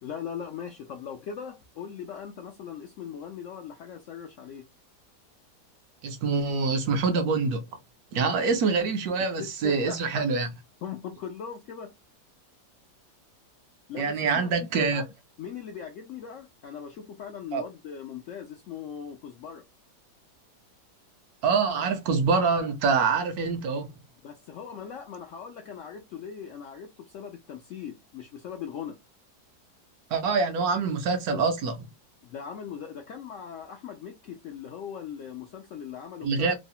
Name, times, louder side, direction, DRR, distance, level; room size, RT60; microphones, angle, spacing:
voice 1, 0.0-4.6 9.4-10.3 10.8-11.9 13.9-15.1 15.4-19.6 24.2-29.0 32.2-36.5, left 7 dB, 75° left, 0.7 m, -40 dB
voice 2, 6.0-7.6 8.1-10.5 14.0-15.0 17.5-17.6 21.4-23.9 30.1-31.9 36.2-36.5, right 4 dB, 70° right, 1.0 m, -25 dB
3.1 x 2.0 x 2.6 m
omnidirectional pair, 1.8 m